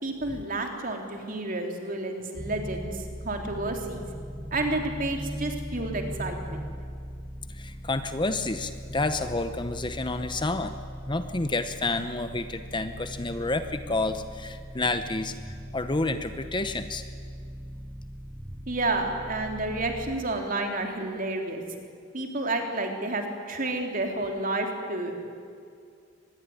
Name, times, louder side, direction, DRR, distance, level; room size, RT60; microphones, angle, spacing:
voice 1, 0.0-4.0 4.5-6.7 18.7-21.6 22.1-25.1, right 2 dB, 40° right, 3 dB, 3.4 m, -30 dB
sound 1, 2.3-20.2, equal, 10° right, 1.1 m, -39 dB
voice 2, 7.5-10.8 11.1-15.3 15.7-17.0, left 2 dB, 20° left, 9 dB, 0.8 m, -29 dB
24.5 x 20.5 x 9.8 m, 2.3 s
head